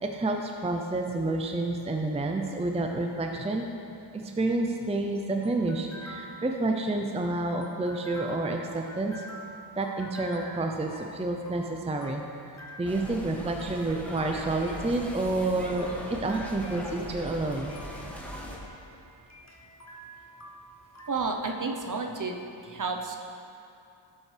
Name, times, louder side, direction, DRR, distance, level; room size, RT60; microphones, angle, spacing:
voice 1, 0.0-3.6 4.1-9.1 9.8-12.2 12.8-15.9 16.2-17.7, right 2 dB, 15° right, 3 dB, 0.6 m, -29 dB
sound 1, 4.5-21.1, right 1 dB, 35° left, 1.1 m, -48 dB
sound 2, 12.8-18.6, equal, 5° left, 1.4 m, -40 dB
voice 2, 21.1-23.2, right 4 dB, 40° right, 3 dB, 0.9 m, -31 dB
11.0 x 7.2 x 3.4 m, 2.7 s
cardioid pair, 55°, 47 cm